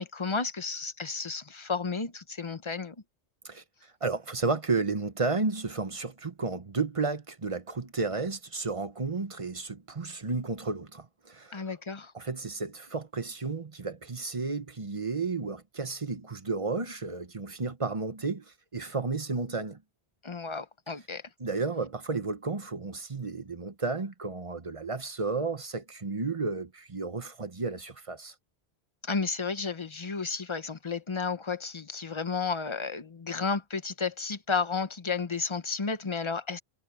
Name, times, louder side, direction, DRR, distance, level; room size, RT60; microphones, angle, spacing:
voice 1, 0.0-3.0 11.5-12.1 20.2-21.2 29.0-36.6, left 4 dB, 30° left, 0.8 m, -32 dB
voice 2, 3.4-11.6 12.1-19.8 21.4-28.3, right 4 dB, 35° right, 1.1 m, -32 dB
omnidirectional pair, 1.1 m